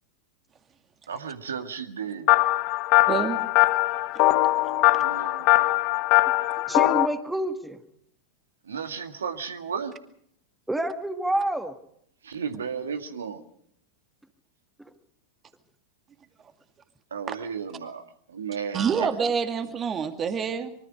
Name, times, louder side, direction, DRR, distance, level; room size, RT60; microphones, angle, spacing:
voice 1, 1.1-2.3 5.0-5.7 8.7-9.9 12.2-13.4 17.1-19.1, right 6 dB, 70° right, 8 dB, 1.9 m, -34 dB
sound 1, 2.3-7.1, left 19 dB, 40° left, 1.3 m, -21 dB
voice 2, 3.1-3.4 4.6-5.0 17.3-17.4 18.7-20.7, right 6 dB, 25° right, 8 dB, 2.4 m, -27 dB
voice 3, 6.7-7.8 10.7-11.8, right 1 dB, 5° right, 8 dB, 1.8 m, -28 dB
25.5 x 24.0 x 5.1 m, 0.69 s
figure-of-eight pair, 90°, 0 cm